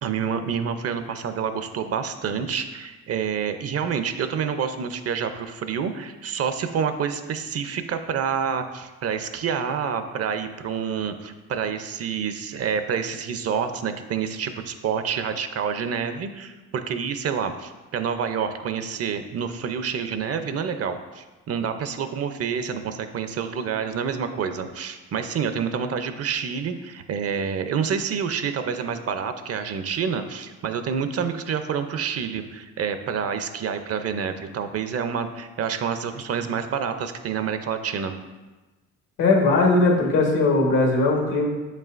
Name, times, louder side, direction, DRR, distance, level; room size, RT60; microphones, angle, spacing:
voice 1, 0.0-38.1, right 7 dB, 55° right, 9 dB, 0.6 m, -28 dB
voice 2, 39.2-41.5, left 3 dB, 85° left, 0 dB, 1.4 m, -19 dB
7.2 x 5.5 x 2.5 m, 1.2 s
cardioid pair, 90°, 30 cm